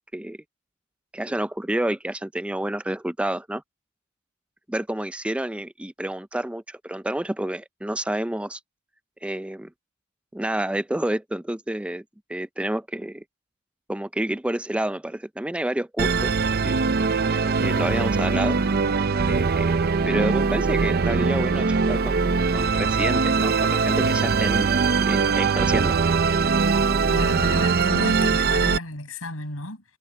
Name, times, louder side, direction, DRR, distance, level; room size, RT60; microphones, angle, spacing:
voice 1, 1.1-3.6 4.7-8.6 9.2-9.7 10.3-12.0 12.3-13.2 13.9-16.4 16.6-16.8 17.2-18.6 19.3-24.8 25.1-26.0, right 1 dB, 5° right, 0.4 m, -29 dB
Musical instrument, 16.0-28.8, right 4 dB, 50° right, 0.6 m, -21 dB
voice 2, 27.1-29.8, left 2 dB, 85° left, 6.6 m, -33 dB
head